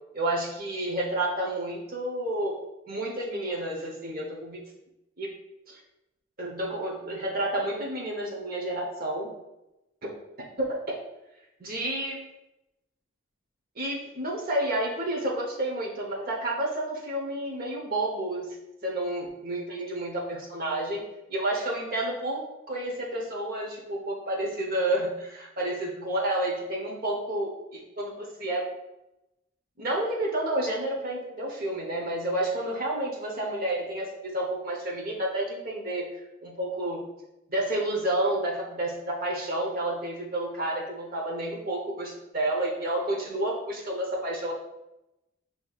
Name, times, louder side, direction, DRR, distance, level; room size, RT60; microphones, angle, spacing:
voice 1, 0.1-2.6 2.9-4.6 5.2-5.3 5.7-5.8 6.4-9.3 10.0-10.1 10.6-10.9 11.6-12.3 13.8-18.6 18.8-21.0 21.3-28.6 29.8-36.1 36.4-37.0 37.5-38.9 39.2-44.5, right 1 dB, 45° right, -2 dB, 0.8 m, -30 dB
7.5 x 2.8 x 2.4 m, 0.92 s
head